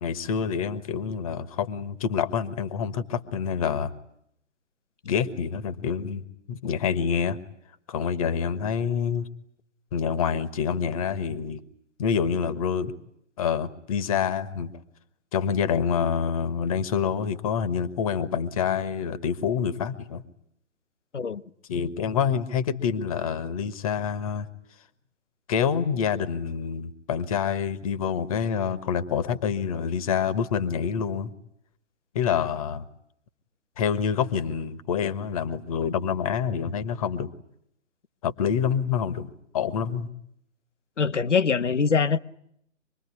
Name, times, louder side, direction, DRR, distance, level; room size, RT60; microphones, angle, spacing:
voice 1, 0.0-3.9 5.1-6.2 6.5-7.4 7.9-9.3 9.9-11.6 12.0-12.9 13.4-14.7 15.3-20.2 21.7-24.5 25.5-31.3 32.1-32.9 33.8-37.3 38.2-40.1, left 7 dB, 30° left, 1.3 m, -27 dB
voice 2, 41.0-42.2, left 5 dB, 70° left, 1.1 m, -23 dB
25.5 x 21.0 x 9.6 m
figure-of-eight pair, 140°, 37 cm